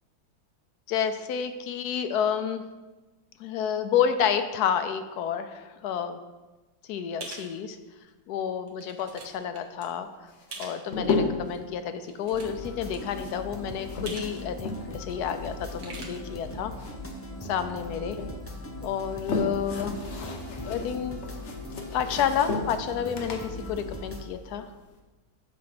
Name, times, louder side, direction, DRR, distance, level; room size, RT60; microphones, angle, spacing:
voice 1, 0.9-2.6 3.4-6.2 6.9-7.8 8.3-10.1 10.6-16.7 17.5-18.2 18.8-19.9 20.6-21.2 21.9-24.7, left 8 dB, 80° left, 9 dB, 1.2 m, -29 dB
sound 1, 7.2-7.5 8.1-8.2 8.7-9.3 9.5-9.8 10.5-10.8 11.9-12.7 12.9-13.0 14.1-14.3 14.6-14.7 15.6-16.0, right 4 dB, 70° right, 1.7 m, -42 dB
sound 2, 10.3-11.6 12.7-15.1 15.3-17.2 17.5-18.3 18.9-24.9, left 3 dB, 50° left, 1.1 m, -34 dB
sound 3, 12.3-24.2, left 1 dB, 15° left, 0.5 m, -39 dB
7.5 x 4.7 x 5.9 m, 1.2 s
omnidirectional pair, 1.7 m